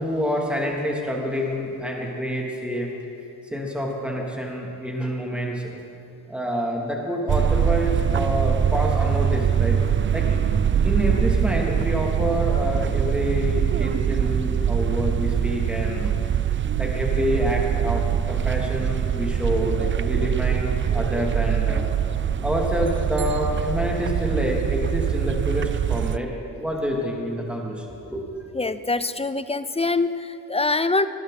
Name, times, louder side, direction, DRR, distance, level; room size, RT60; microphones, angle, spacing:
voice 1, 0.0-2.9 3.5-5.7 6.3-9.8 10.1-10.4 10.8-16.1 16.8-21.8 22.4-28.2, equal, 5° right, -2 dB, 3.2 m, -27 dB
sound 1, 7.3-26.2, right 8 dB, 30° right, 0.5 m, -23 dB
voice 2, 28.5-31.1, left 3 dB, 15° left, 13 dB, 0.6 m, -24 dB
20.5 x 11.5 x 4.4 m, 2.5 s
supercardioid pair, 55°, 37 cm